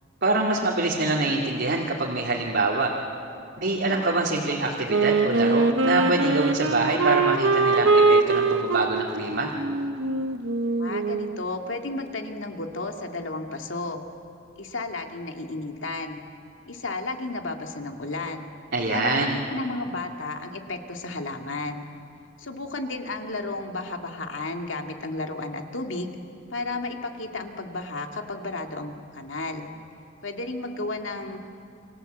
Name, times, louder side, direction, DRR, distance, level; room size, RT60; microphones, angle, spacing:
voice 1, 0.2-2.9 3.6-9.5 18.7-19.4, right 2 dB, 60° right, -2 dB, 2.5 m, -25 dB
Wind instrument woodwind instrument, 4.9-11.5, right 3 dB, 75° right, 1.3 m, -23 dB
voice 2, 10.8-14.0 14.6-16.2 16.7-18.5 18.9-21.9 22.4-26.1 26.5-29.7 30.2-31.4, left 2 dB, 75° left, 4 dB, 2.3 m, -33 dB
29.0 x 25.0 x 8.0 m, 2.5 s
head